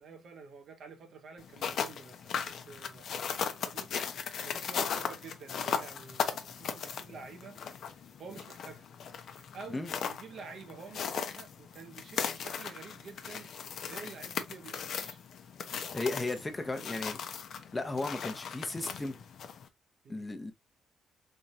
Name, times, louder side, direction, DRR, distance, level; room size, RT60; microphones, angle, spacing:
voice 1, 0.0-7.6 7.9-8.9 9.3-15.2 16.7-16.9 20.0-20.2, right 5 dB, 60° right, 1.1 m, -49 dB
sound 1, 1.4-19.7, left 7 dB, 65° left, 0.7 m, -38 dB
voice 2, 15.9-17.2 17.7-19.2 20.1-20.5, left 2 dB, 20° left, 0.8 m, -35 dB
3.5 x 3.0 x 2.6 m
cardioid pair, 90°, 0 cm